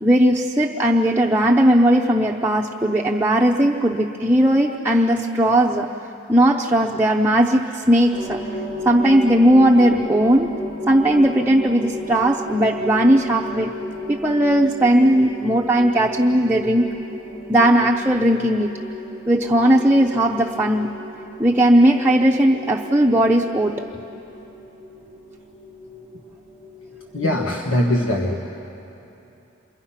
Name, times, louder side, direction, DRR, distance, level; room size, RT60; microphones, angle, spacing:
voice 1, 0.0-5.9 6.3-8.4 8.8-10.5 10.9-13.8 14.1-16.9 17.5-18.7 19.3-20.9 21.4-23.9 27.5-27.6, right 1 dB, 10° right, -2 dB, 0.6 m, -17 dB
sound 1, 8.1-27.9, equal, 70° left, 6.8 m, -34 dB
voice 2, 27.1-28.4, left 1 dB, 85° left, 0 dB, 1.6 m, -21 dB
28.0 x 23.5 x 5.7 m, 2.9 s
head